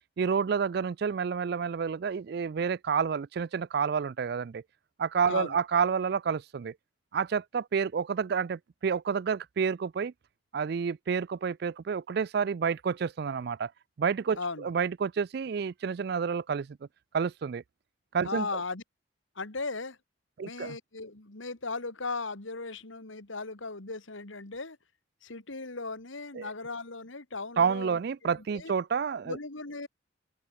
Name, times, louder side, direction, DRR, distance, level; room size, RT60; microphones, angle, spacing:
voice 1, 0.2-4.6 5.0-6.7 7.1-10.1 10.5-13.7 14.0-16.8 17.1-17.6 18.1-18.5 20.4-20.8 26.3-26.5 27.6-29.4, right 6 dB, 55° right, 0.4 m, -29 dB
voice 2, 5.3-5.6 14.4-14.7 18.2-18.8 19.4-20.0 20.4-24.8 25.2-28.0 28.5-28.7 29.3-29.9, left 3 dB, 85° left, 2.3 m, -37 dB
head